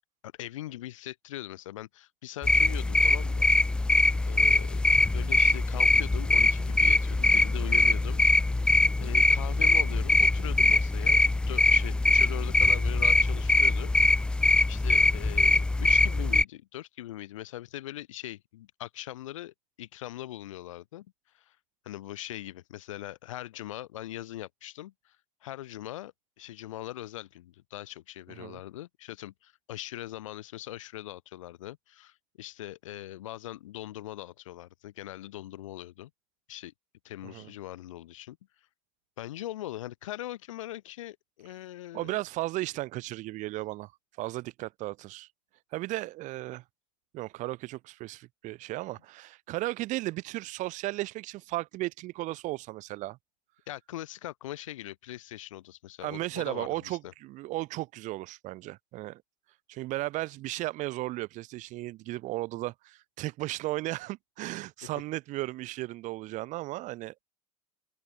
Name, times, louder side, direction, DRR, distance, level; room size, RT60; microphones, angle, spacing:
voice 1, 0.2-3.8 4.2-8.2 9.0-13.9 14.6-21.1 21.3-21.6 21.8-25.2 25.4-36.1 36.5-36.7 37.0-38.4 39.2-42.2 53.7-57.1, left 14 dB, 70° left, 4.5 m, -41 dB
sound 1, 2.4-16.4, left 2 dB, 5° left, 0.3 m, -23 dB
voice 2, 28.3-28.6 37.2-37.5 41.9-43.9 44.2-45.3 45.7-46.6 47.1-53.2 56.0-59.2 59.7-67.2, right 18 dB, 45° right, 2.6 m, -35 dB
open air
hypercardioid pair, 85°, 17 cm